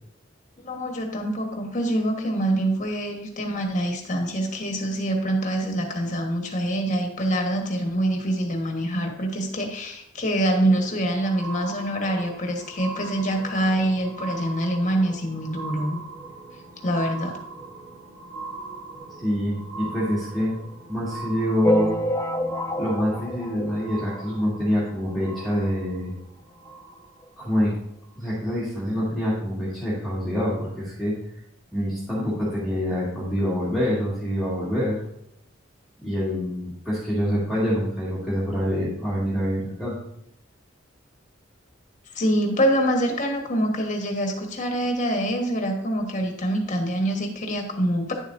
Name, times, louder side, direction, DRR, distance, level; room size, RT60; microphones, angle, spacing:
voice 1, 0.6-16.0 16.8-17.4 42.1-48.1, right 1 dB, 40° left, 2 dB, 1.4 m, -25 dB
sound 1, 10.5-27.3 28.1-28.2, right 3 dB, 40° right, 1.6 m, -41 dB
voice 2, 19.2-20.6 20.9-21.9 22.8-26.1 27.4-27.7 28.2-31.1 31.7-35.0 36.0-39.9, equal, ahead, -10 dB, 1.9 m, -26 dB
sound 2, 21.6-24.5 25.0-25.1 25.3-25.4 25.7-25.8 26.7-26.8 27.2-27.3, left 1 dB, 15° left, 0.3 m, -27 dB
10.0 x 7.2 x 2.6 m, 0.75 s
head